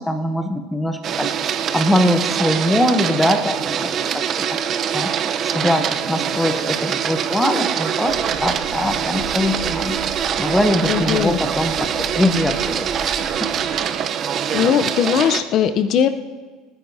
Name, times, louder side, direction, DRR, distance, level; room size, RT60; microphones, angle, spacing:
voice 1, 0.0-1.3 1.7-4.6 4.9-5.1 5.4-10.0 10.4-12.9 13.2-13.5, left 1 dB, 5° left, 7 dB, 0.9 m, -22 dB
Printer, 1.0-15.4, right 8 dB, 40° right, 0.7 m, -23 dB
sound 1, 8.1-13.7, right 4 dB, 55° right, 3.6 m, -37 dB
voice 2, 10.9-11.4 14.5-16.1, left 8 dB, 50° left, 10 dB, 0.6 m, -19 dB
28.0 x 9.5 x 2.7 m, 1.4 s
cardioid pair, 135°, 0 cm